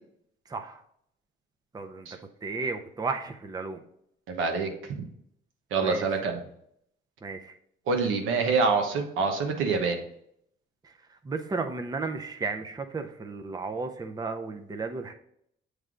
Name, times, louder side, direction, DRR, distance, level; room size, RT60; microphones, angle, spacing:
voice 1, 0.5-0.8 1.7-2.1 2.4-3.8 5.8-6.1 7.2-7.5 11.2-15.1, right 4 dB, 20° right, 6 dB, 0.5 m, -33 dB
voice 2, 4.3-5.1 5.7-6.4 7.9-10.0, right 4 dB, 85° right, 4 dB, 1.0 m, -26 dB
7.7 x 3.3 x 3.7 m, 0.72 s
cardioid pair, 90°, 20 cm